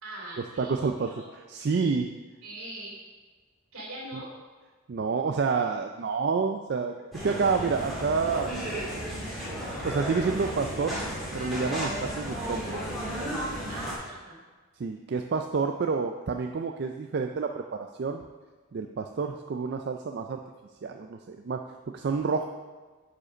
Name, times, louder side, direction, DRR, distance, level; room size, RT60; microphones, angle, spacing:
voice 1, 0.0-1.3 2.4-3.0 3.7-4.3 13.7-14.4, right 1 dB, 70° right, -4 dB, 2.9 m, -41 dB
voice 2, 0.6-1.1 1.5-2.1 4.1-4.2 4.9-8.5 8.9-9.5 9.8-11.0 11.3-12.6 14.8-18.2 18.7-20.4 20.8-21.6 21.9-22.4, right 5 dB, 45° right, 4 dB, 0.3 m, -29 dB
sound 1, 7.1-13.9, equal, ahead, 2.5 m, -34 dB
9.4 x 5.1 x 4.9 m, 1.3 s
head